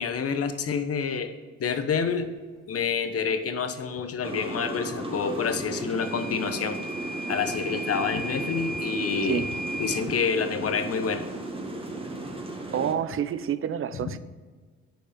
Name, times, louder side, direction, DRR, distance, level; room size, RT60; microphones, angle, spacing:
voice 1, 0.0-1.3 1.6-2.3 2.7-6.8 7.3-9.4 9.8-11.3, left 6 dB, 50° left, 9 dB, 1.1 m, -28 dB
sound 1, 4.2-12.9, right 2 dB, 20° right, 1.5 m, -35 dB
Microwave oven / Alarm, 6.0-10.1, right 2 dB, ahead, 0.4 m, -36 dB
voice 2, 12.7-14.2, right 9 dB, 45° right, 13 dB, 0.6 m, -28 dB
9.1 x 5.3 x 5.2 m, 1.5 s
cardioid pair, 90°, 30 cm